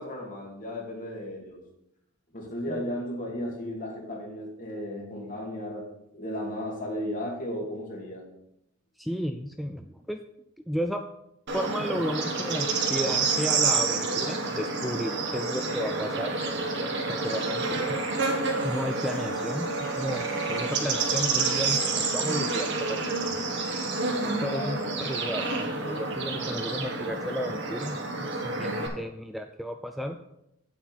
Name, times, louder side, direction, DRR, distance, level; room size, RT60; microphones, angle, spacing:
voice 1, 0.0-1.6 2.3-5.9 6.1-8.3 17.5-17.6 24.5-24.9, equal, 40° left, -1 dB, 2.4 m, -35 dB
voice 2, 9.0-10.2 10.7-11.0 11.5-16.4 17.1-18.0 18.6-23.4 24.4-30.2, equal, ahead, 6 dB, 0.3 m, -33 dB
Bird / Insect, 11.5-28.9, right 3 dB, 60° right, 1.7 m, -29 dB
8.5 x 7.9 x 4.2 m, 0.82 s
head